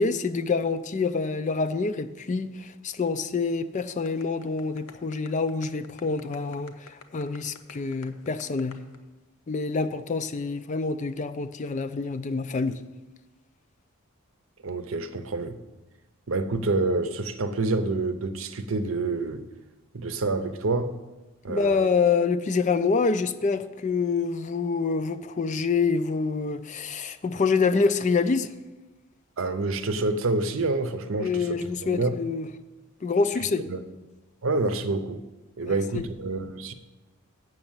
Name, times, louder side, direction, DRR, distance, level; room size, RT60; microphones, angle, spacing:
voice 1, 0.0-8.8 9.5-12.8 21.5-28.5 31.2-32.5 33.0-33.7 35.6-36.0, left 4 dB, 35° left, 11 dB, 0.3 m, -26 dB
sound 1, 4.0-9.0, left 4 dB, 80° left, 0.8 m, -48 dB
voice 2, 14.6-15.6 16.3-19.4 19.9-20.9 21.4-21.9 29.4-32.1 33.7-33.8 34.4-35.2 35.6-36.7, right 3 dB, 65° right, 10 dB, 0.7 m, -27 dB
7.9 x 6.3 x 7.3 m, 1.1 s
head